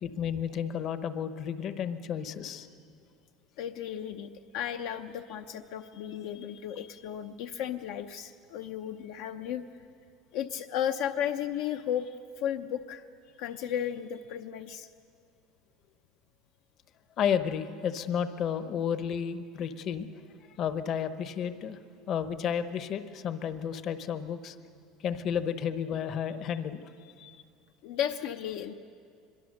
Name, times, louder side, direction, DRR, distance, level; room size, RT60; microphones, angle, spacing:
voice 1, 0.0-2.7 17.2-20.1 20.6-21.8 22.1-24.6 25.0-26.8 27.2-27.4, left 8 dB, 40° left, 11 dB, 0.9 m, -32 dB
voice 2, 3.6-9.6 10.3-13.0 13.4-14.9 27.8-28.7, left 9 dB, 65° left, 6 dB, 0.7 m, -34 dB
24.0 x 22.5 x 6.5 m, 2.3 s
cardioid pair, 165°, 0 cm